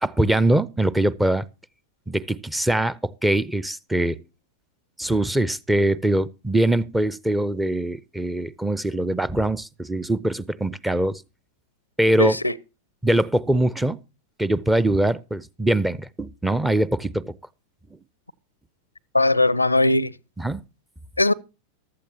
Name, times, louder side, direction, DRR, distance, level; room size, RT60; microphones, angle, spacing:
voice 1, 0.0-1.4 2.1-4.2 5.0-11.2 12.0-12.4 13.0-14.0 14.4-17.3 20.4-20.6, right 1 dB, 5° right, 0.5 m, -22 dB
voice 2, 12.2-12.5 19.1-20.1 21.2-21.3, left 2 dB, 85° left, 0.5 m, -19 dB
15.0 x 11.5 x 2.8 m
figure-of-eight pair, 90°, 0 cm